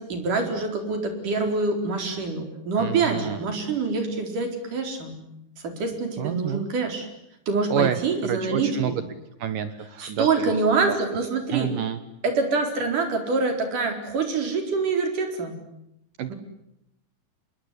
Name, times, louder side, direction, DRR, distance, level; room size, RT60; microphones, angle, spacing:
voice 1, 0.0-5.2 5.6-7.1 7.5-9.0 10.0-11.7 12.2-15.6 16.3-16.4, right 4 dB, 45° right, 5 dB, 5.5 m, -25 dB
voice 2, 2.8-3.4 6.2-6.6 7.7-9.0 9.4-10.5 10.9-11.0 11.5-12.0 16.2-16.3, right 9 dB, 65° right, 11 dB, 2.4 m, -28 dB
27.0 x 21.5 x 9.8 m, 0.83 s
omnidirectional pair, 5.1 m